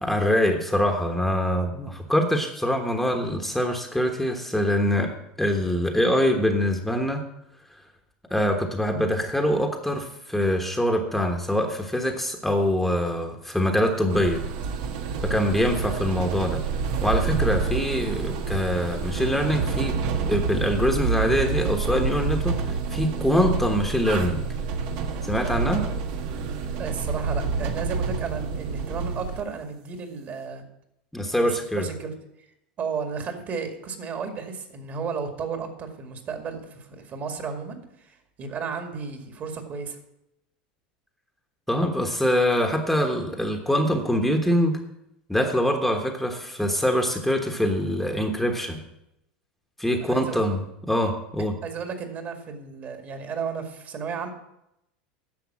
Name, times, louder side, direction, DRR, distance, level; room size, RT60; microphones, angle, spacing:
voice 1, 0.0-5.1 5.4-7.2 8.3-14.4 15.2-16.6 17.0-19.9 20.3-24.4 25.2-25.8 31.1-31.9 41.7-44.8 45.3-48.8 49.8-51.5, equal, 5° left, 3 dB, 1.2 m, -24 dB
sound 1, 14.1-29.4, right 5 dB, 65° right, 1.2 m, -28 dB
voice 2, 26.8-30.7 31.4-32.1 32.8-40.0 50.0-50.5 51.6-54.3, right 5 dB, 40° right, 6 dB, 2.1 m, -33 dB
10.5 x 6.6 x 7.3 m, 0.83 s
hypercardioid pair, 105°, 5 cm